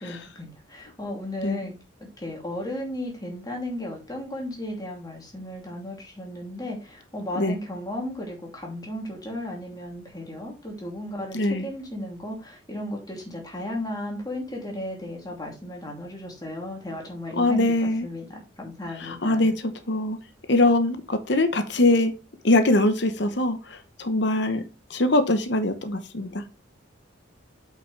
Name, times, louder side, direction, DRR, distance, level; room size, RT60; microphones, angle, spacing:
voice 1, 0.0-1.7 2.0-19.6, left 1 dB, 20° left, -1 dB, 2.9 m, -35 dB
voice 2, 11.3-11.7 17.4-18.1 19.0-19.5 19.9-20.2 20.5-22.1 22.4-23.6 24.0-24.6 24.9-26.3, left 2 dB, 60° left, 9 dB, 1.0 m, -22 dB
8.4 x 5.8 x 3.3 m, 0.29 s
head